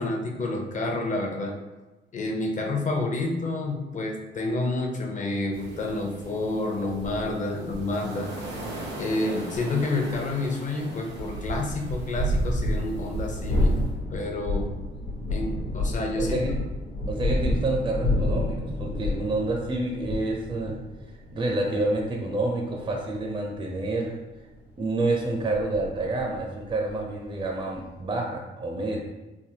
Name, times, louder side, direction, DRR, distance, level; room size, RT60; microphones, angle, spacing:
voice 1, 0.0-1.6 2.1-8.3 9.0-13.7 14.1-14.7 15.3-16.4, left 2 dB, 40° left, 1 dB, 0.6 m, -29 dB
sound 1, 5.5-13.9, right 2 dB, 85° right, 1.1 m, -34 dB
sound 2, 12.6-28.0, left 1 dB, 65° left, 1.1 m, -30 dB
voice 2, 16.2-16.6 17.1-20.8 21.3-24.2 24.8-29.0, right 2 dB, 25° right, 0 dB, 0.5 m, -28 dB
3.4 x 2.1 x 2.7 m, 1.1 s
cardioid pair, 90°, 20 cm